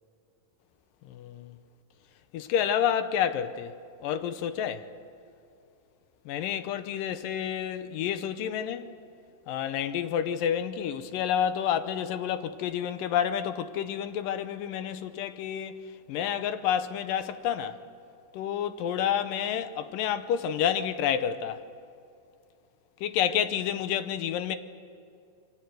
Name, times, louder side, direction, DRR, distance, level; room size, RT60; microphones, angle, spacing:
voice 1, 1.1-1.6 2.3-3.7 4.0-4.8 6.3-8.9 9.5-15.8 16.1-17.8 18.3-21.6 23.0-24.6, left 9 dB, 90° left, 2.7 m, -29 dB
28.5 x 23.5 x 7.8 m
omnidirectional pair, 3.8 m